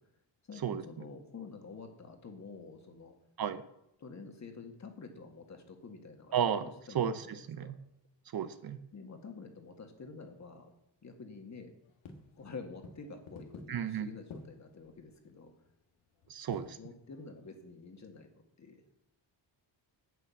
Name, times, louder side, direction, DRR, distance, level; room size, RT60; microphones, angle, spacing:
voice 1, 0.5-3.2 4.0-7.7 8.9-10.7 11.0-11.7 12.4-15.5 16.8-18.8, left 4 dB, 35° left, 5 dB, 2.0 m, -48 dB
voice 2, 6.3-6.6 6.9-7.8 8.3-8.8 13.7-14.1 16.3-16.8, right 8 dB, 50° right, 11 dB, 0.8 m, -33 dB
sound 1, 11.8-17.7, left 3 dB, 85° left, 1.8 m, -53 dB
9.5 x 8.5 x 7.1 m, 0.79 s
cardioid pair, 140°, 47 cm